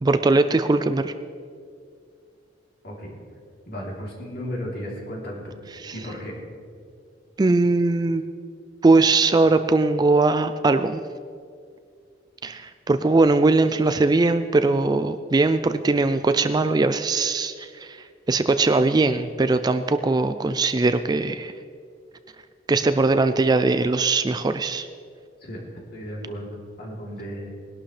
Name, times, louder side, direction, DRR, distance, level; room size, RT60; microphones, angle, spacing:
voice 1, 0.0-1.1 5.7-5.9 7.4-8.2 8.8-11.0 12.4-18.0 18.3-21.5 22.7-24.9, right 3 dB, 20° right, 10 dB, 0.3 m, -20 dB
voice 2, 3.7-5.5 5.9-6.3 25.4-25.6 25.9-27.5, equal, 55° left, -3 dB, 3.3 m, -34 dB
20.0 x 11.5 x 3.3 m, 2.2 s
head